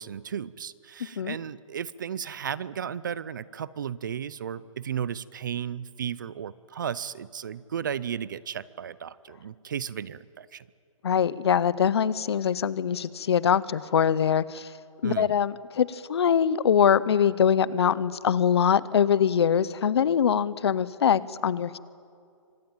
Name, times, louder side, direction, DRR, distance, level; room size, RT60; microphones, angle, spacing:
voice 1, 0.0-10.6 15.0-15.3, right 8 dB, 35° right, 20 dB, 0.5 m, -34 dB
voice 2, 11.0-14.7 15.0-21.8, left 8 dB, 50° left, 19 dB, 0.8 m, -23 dB
25.0 x 18.5 x 8.9 m, 2.3 s
hypercardioid pair, 175°, 17 cm